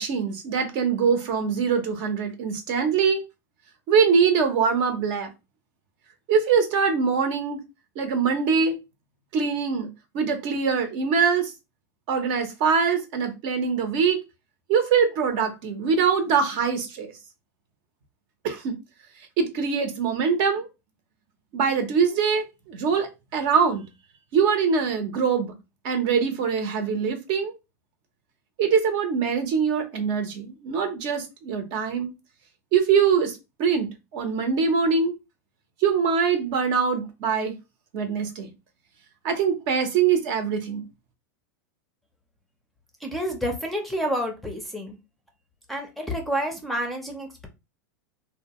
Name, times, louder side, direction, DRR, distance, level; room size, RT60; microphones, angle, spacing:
voice 1, 0.0-3.2 3.9-5.3 6.3-7.6 8.0-8.8 9.3-11.5 12.1-14.2 14.7-17.1 18.4-18.7 19.4-20.7 21.5-23.8 24.3-25.5 25.8-27.5 28.6-32.1 32.7-35.1 35.8-37.6 37.9-38.5 39.2-40.8, right 6 dB, 55° right, 0.8 m, -23 dB
voice 2, 43.0-45.0 45.7-47.5, equal, ahead, 0.6 m, -29 dB
2.8 x 2.2 x 2.9 m
supercardioid pair, 130°, 10 cm